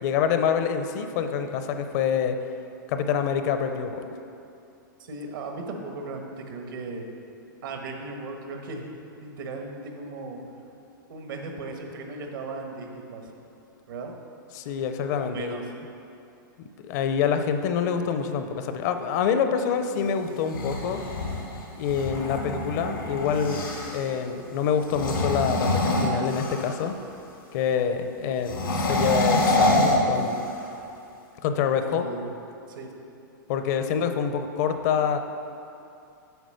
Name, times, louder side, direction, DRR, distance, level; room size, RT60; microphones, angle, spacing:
voice 1, 0.0-2.4 2.9-4.1 14.5-15.6 16.8-21.0 21.8-26.9 27.5-30.4 31.4-32.1 33.5-35.2, left 7 dB, 50° left, 7 dB, 0.6 m, -26 dB
voice 2, 5.0-7.0 7.6-8.9 9.2-10.4 11.1-13.3 13.9-14.1 15.2-15.6 31.8-32.3 32.7-32.9, right 3 dB, 75° right, 3 dB, 1.3 m, -37 dB
sound 1, 20.3-24.1 24.8-26.9 28.4-30.7, left 1 dB, 90° left, 2.1 m, -26 dB
8.0 x 4.9 x 6.5 m, 2.7 s
hypercardioid pair, 130°, 11 cm